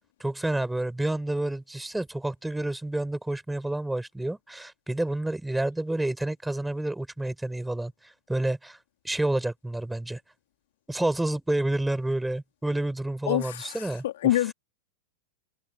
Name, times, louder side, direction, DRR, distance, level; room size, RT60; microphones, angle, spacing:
voice 1, 0.2-8.8 9.0-10.2 10.9-14.4, right 1 dB, 5° right, 6.4 m, -29 dB
voice 2, 13.3-14.5, left 14 dB, 55° left, 3.7 m, -26 dB
figure-of-eight pair, 90°, 0 cm